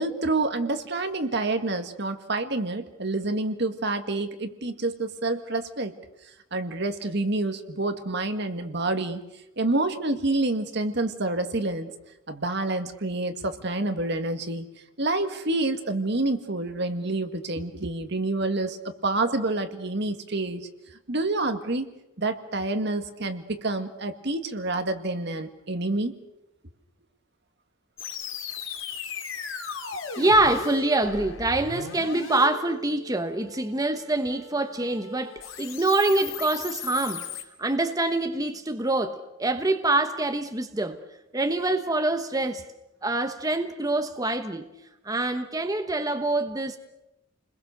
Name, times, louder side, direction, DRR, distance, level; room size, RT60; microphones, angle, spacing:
voice 1, 0.0-5.9 6.5-9.2 9.6-11.9 12.3-14.7 15.0-20.7 21.1-21.9 22.2-26.1, right 2 dB, 60° right, 7 dB, 1.9 m, -28 dB
sound 1, 28.0-37.4, left 5 dB, 80° left, 3.3 m, -37 dB
voice 2, 30.2-37.3 37.6-41.0 41.3-42.6 43.0-44.7 45.0-46.8, right 2 dB, 20° right, 7 dB, 1.1 m, -25 dB
29.5 x 21.5 x 6.7 m, 0.90 s
head